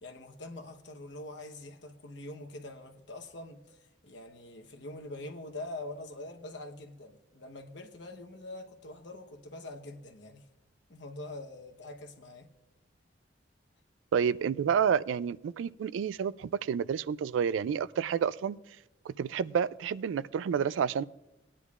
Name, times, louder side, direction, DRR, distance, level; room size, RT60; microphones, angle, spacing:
voice 1, 0.0-10.5 10.9-12.5, left 2 dB, 70° left, 1.0 m, -44 dB
voice 2, 14.1-18.6 19.1-21.0, right 7 dB, 85° right, 0.3 m, -29 dB
19.0 x 10.0 x 2.4 m
head